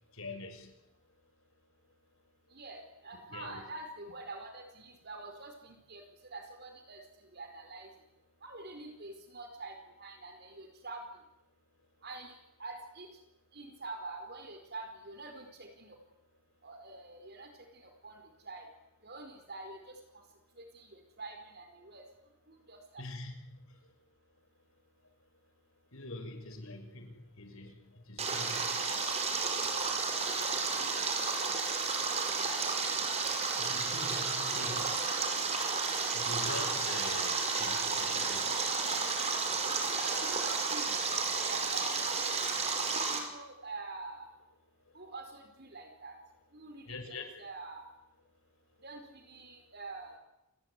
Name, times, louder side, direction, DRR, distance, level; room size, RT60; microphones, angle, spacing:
voice 1, 0.1-0.7 3.3-3.6 23.0-23.6 25.9-28.7 33.6-34.9 36.1-38.7 46.9-47.3, left 2 dB, 70° left, 7 dB, 5.7 m, -44 dB
voice 2, 2.5-7.9 8.4-11.0 12.0-13.1 13.5-16.0 16.6-18.7 19.0-20.2 20.6-22.0 22.5-23.0 31.5-31.6 34.3-34.9 39.9-42.6 43.1-44.3 44.9-46.2 46.5-47.9 48.8-50.1, right 3 dB, 50° right, 5 dB, 4.7 m, -46 dB
Stream, 28.2-43.2, right 4 dB, 30° right, 5.2 m, -32 dB
28.5 x 19.5 x 9.9 m, 0.90 s
head